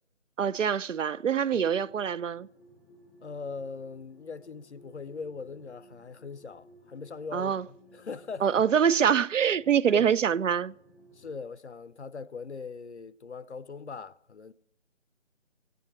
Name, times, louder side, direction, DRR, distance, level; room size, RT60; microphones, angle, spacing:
voice 1, 0.4-2.5 7.3-7.7 8.4-10.7, right 8 dB, 75° right, 0.5 m, -25 dB
sound 1, 1.0-11.3, right 1 dB, ahead, 0.6 m, -58 dB
voice 2, 3.2-8.6 9.9-10.1 11.1-14.5, left 5 dB, 60° left, 0.6 m, -40 dB
16.5 x 9.2 x 4.4 m
figure-of-eight pair, 175°, 38 cm